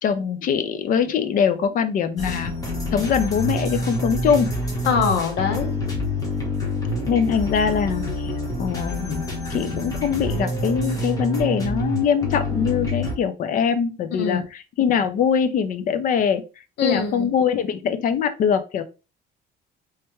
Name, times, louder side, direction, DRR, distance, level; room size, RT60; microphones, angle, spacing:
voice 1, 0.0-2.5 2.9-4.5 7.1-8.3 8.6-9.2 9.5-16.4 16.8-18.8, left 7 dB, 50° left, 10 dB, 0.5 m, -22 dB
sound 1, 2.2-13.1, left 1 dB, 20° left, 1.2 m, -27 dB
voice 2, 4.8-5.7 14.2-14.4 16.8-17.3, left 6 dB, 75° left, 5 dB, 1.0 m, -23 dB
3.4 x 3.3 x 3.0 m, 0.31 s
cardioid pair, 155°, 18 cm